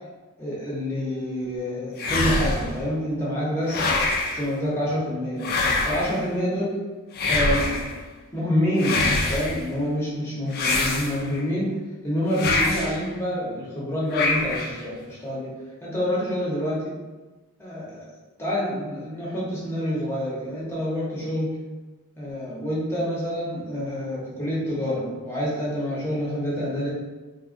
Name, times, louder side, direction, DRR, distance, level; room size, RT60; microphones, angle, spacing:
voice 1, 0.4-3.9 4.3-6.8 7.3-8.0 8.3-11.8 12.0-17.0 17.6-18.0 18.4-21.6 22.2-26.9, equal, 10° left, -7 dB, 0.8 m, -27 dB
sound 1, 2.0-2.8 3.7-4.4 5.4-6.2 7.1-7.9 8.8-9.6 10.5-11.4 12.3-13.0 14.1-14.8, left 2 dB, 45° left, 0.3 m, -24 dB
3.5 x 2.3 x 2.5 m, 1.2 s
head